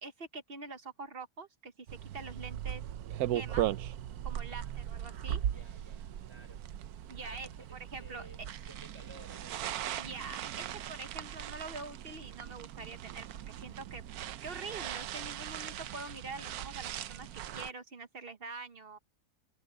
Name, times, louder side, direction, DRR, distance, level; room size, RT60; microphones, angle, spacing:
voice 1, 0.0-2.8 3.3-3.7 4.2-5.4 7.1-8.3 9.9-14.0 14.4-19.0, right 3 dB, 40° right, 1.1 m, -45 dB
sound 1, 1.9-17.7, right 11 dB, 70° right, 1.2 m, -39 dB
voice 2, 4.4-6.7 7.2-9.8, right 1 dB, 15° right, 4.9 m, -57 dB
omnidirectional pair, 1.7 m